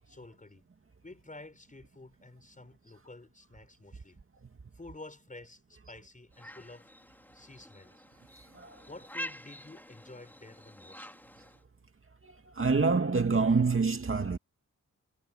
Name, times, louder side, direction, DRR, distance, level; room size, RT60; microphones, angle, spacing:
voice 1, 0.1-0.7 1.0-4.2 4.7-6.9 7.3-8.0 8.9-11.3 11.7-11.9, left 2 dB, 25° left, 7.2 m, -50 dB
sound 1, 6.3-11.6, equal, 5° left, 4.2 m, -47 dB
voice 2, 12.2-14.4, right 4 dB, 40° right, 2.2 m, -27 dB
wide cardioid pair, 95°, 32 cm